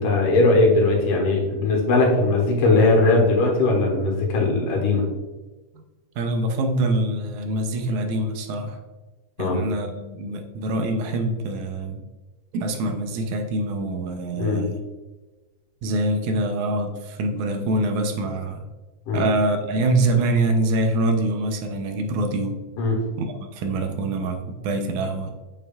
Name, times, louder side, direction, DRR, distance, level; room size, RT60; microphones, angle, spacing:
voice 1, 0.0-5.1 9.4-9.6 14.4-14.7 19.1-19.3 22.8-23.0, left 2 dB, 90° left, 0 dB, 2.8 m, -19 dB
voice 2, 6.2-8.8 9.4-12.0 12.5-14.8 15.8-18.6 19.1-22.6 23.2-25.3, right 2 dB, 75° right, 4 dB, 2.0 m, -25 dB
7.6 x 5.3 x 2.3 m, 1.2 s
omnidirectional pair, 3.6 m